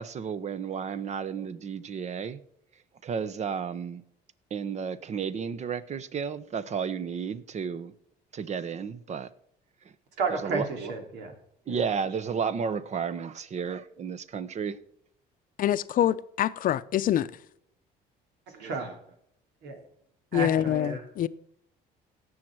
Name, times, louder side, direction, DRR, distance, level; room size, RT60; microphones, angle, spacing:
voice 1, 0.0-2.4 3.0-4.0 4.5-7.9 8.3-9.3 10.3-10.7 11.7-14.8, right 6 dB, 40° right, 0.9 m, -32 dB
voice 2, 10.2-11.3 11.7-11.8 18.5-19.0 19.6-19.8 20.3-21.0, right 4 dB, 85° right, 3.0 m, -32 dB
voice 3, 15.6-17.3 20.3-21.3, left 11 dB, 55° left, 0.7 m, -25 dB
17.0 x 6.5 x 4.7 m
cardioid pair, 110°, 17 cm